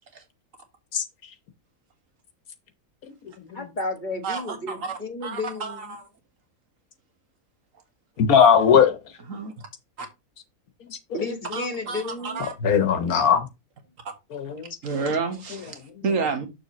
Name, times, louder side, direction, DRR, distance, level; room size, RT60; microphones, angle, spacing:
voice 1, 3.5-5.9 11.1-12.4, left 2 dB, 35° left, 1.5 m, -32 dB
voice 2, 4.2-6.1 9.3-9.5 10.0-10.1 11.5-12.5 14.8-16.5, right 4 dB, 60° right, 1.9 m, -30 dB
voice 3, 8.2-9.0 12.6-13.5 14.3-14.7, left 7 dB, 75° left, 1.4 m, -18 dB
7.0 x 6.7 x 3.0 m
omnidirectional pair, 1.6 m